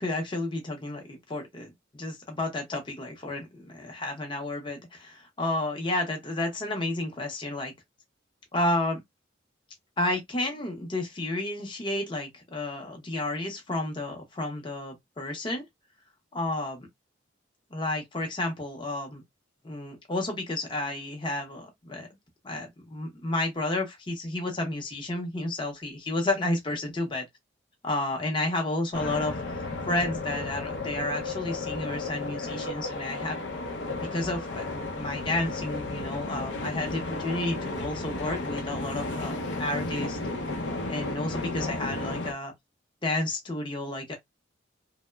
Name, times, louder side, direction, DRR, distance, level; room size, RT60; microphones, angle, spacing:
voice 1, 0.0-7.7 8.5-9.0 10.0-15.6 16.3-16.9 17.7-19.2 19.6-22.1 22.4-27.3 27.8-33.4 33.9-40.2 40.9-42.5 43.0-44.2, left 2 dB, 25° left, 0.6 m, -31 dB
sound 1, 28.9-42.3, left 2 dB, 70° left, 0.6 m, -33 dB
2.8 x 2.0 x 2.2 m
head